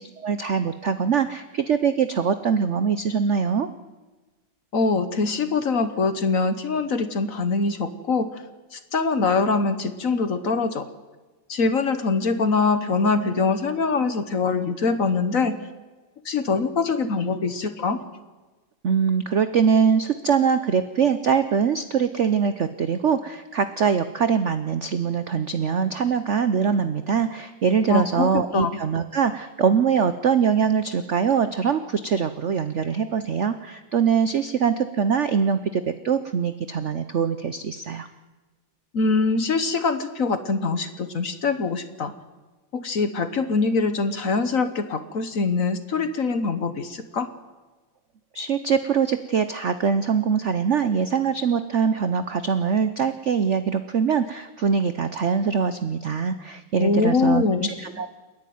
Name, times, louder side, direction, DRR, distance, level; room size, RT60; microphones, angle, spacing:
voice 1, 0.2-3.7 18.8-38.1 48.3-58.2, right 6 dB, 75° right, 11 dB, 0.6 m, -23 dB
voice 2, 4.7-8.4 8.7-10.9 11.5-15.5 16.2-18.0 27.9-28.3 28.5-28.8 38.9-42.1 42.7-47.3 56.8-57.7, left 4 dB, 45° left, 10 dB, 1.3 m, -23 dB
29.0 x 10.5 x 9.4 m, 1.3 s
omnidirectional pair, 2.3 m